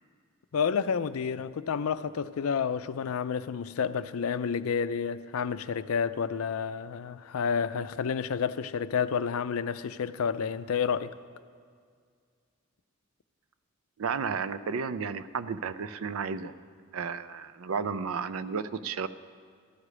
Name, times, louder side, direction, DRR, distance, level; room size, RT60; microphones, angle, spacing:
voice 1, 0.5-11.1, left 6 dB, 90° left, 0.4 m, -30 dB
voice 2, 14.0-16.5 16.9-19.1, right 5 dB, 85° right, 0.4 m, -32 dB
14.5 x 11.0 x 4.9 m
head